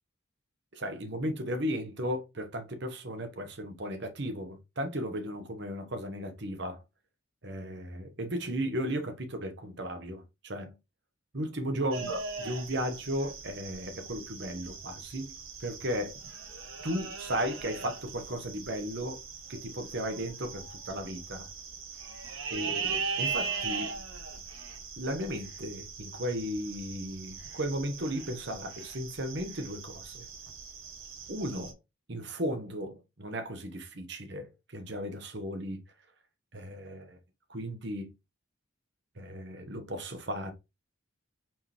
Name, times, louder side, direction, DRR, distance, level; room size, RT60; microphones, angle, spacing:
voice 1, 0.7-6.8 7.4-10.7 11.3-16.2 16.8-19.2 19.5-21.5 22.5-23.9 25.0-30.3 31.3-31.8 32.1-35.8 36.5-37.2 37.5-38.1 39.2-40.5, equal, 55° right, 1.2 m, -35 dB
sound 1, 11.9-31.7, right 5 dB, 75° right, 1.2 m, -40 dB
4.6 x 3.7 x 3.0 m
head